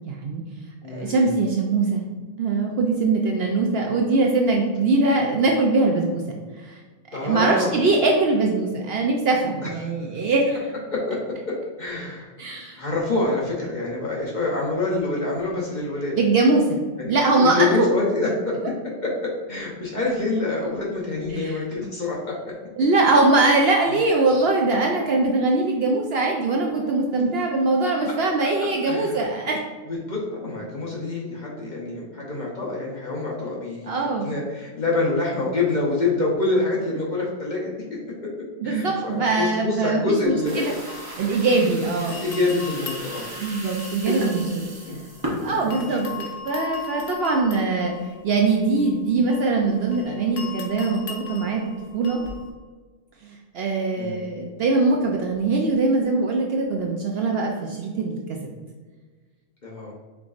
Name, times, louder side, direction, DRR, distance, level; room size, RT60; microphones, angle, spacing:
voice 1, 0.1-0.4 0.9-2.0 2.4-6.2 6.6-6.8 7.2-10.6 12.4-12.8 16.2-16.8 17.1-17.9 21.3-21.6 22.8-29.6 33.9-34.3 38.6-40.7 41.2-42.2 43.3-44.6 45.4-47.9 48.2-51.7 51.9-52.2 53.2-58.2, right 3 dB, 65° right, 0 dB, 0.7 m, -22 dB
voice 2, 0.8-1.4 7.1-7.8 9.6-9.7 10.9-11.2 11.5-12.3 12.8-16.1 17.0-18.5 19.0-22.5 28.8-29.2 29.9-38.0 38.6-40.8 42.1-43.3 44.8-45.0 45.4-46.0 54.0-54.2 59.6-59.9, left 3 dB, 45° left, -4 dB, 0.7 m, -26 dB
sound 1, 40.2-41.7 42.1-45.3 45.7-52.5, left 6 dB, 70° left, 1.1 m, -39 dB
sound 2, 40.4-46.2, left 1 dB, 30° right, 0.4 m, -35 dB
4.6 x 3.8 x 2.4 m, 1.4 s
omnidirectional pair, 1.3 m